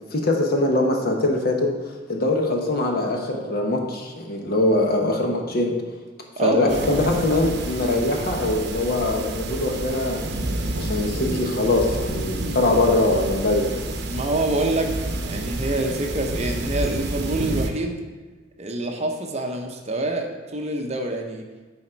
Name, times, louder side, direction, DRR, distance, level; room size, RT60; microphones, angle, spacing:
voice 1, 0.1-1.7 2.1-5.7 6.4-10.2 10.7-13.7, left 2 dB, 55° left, 1 dB, 1.1 m, -22 dB
voice 2, 6.4-7.1 14.1-14.9 15.2-18.0 18.6-21.4, right 2 dB, 35° right, 3 dB, 0.8 m, -26 dB
sound 1, 6.7-17.7, right 2 dB, 65° right, 0.8 m, -29 dB
10.0 x 4.2 x 4.5 m, 1.3 s
head